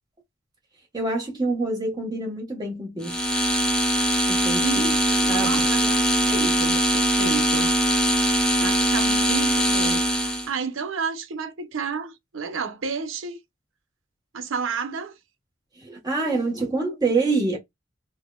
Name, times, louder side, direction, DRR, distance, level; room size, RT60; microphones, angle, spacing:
voice 1, 0.9-3.3 4.3-4.9 5.3-6.6 15.8-17.6, right 3 dB, 20° right, 1.0 m, -27 dB
sound 1, 3.0-10.5, equal, 5° left, 0.6 m, -21 dB
voice 2, 4.6-6.0 6.3-7.7 8.6-13.4 14.3-15.1, right 5 dB, 85° right, 0.6 m, -31 dB
3.9 x 2.1 x 2.3 m
head